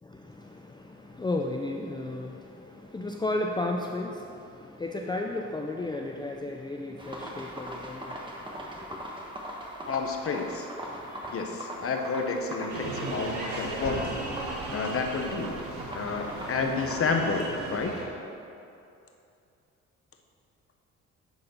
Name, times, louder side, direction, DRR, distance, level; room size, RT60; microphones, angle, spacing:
voice 1, 0.0-9.1 10.8-11.4, left 2 dB, 15° left, 1 dB, 0.5 m, -34 dB
sound 1, 7.0-17.0, equal, 15° right, 1.4 m, -40 dB
voice 2, 9.9-10.7 11.3-14.1 14.7-15.5 15.9-17.9, left 4 dB, 50° left, 4 dB, 1.1 m, -30 dB
sound 2, 12.7-18.0, right 2 dB, 70° right, 2.1 m, -36 dB
10.5 x 4.2 x 5.6 m, 2.7 s
cardioid pair, 90°, 30 cm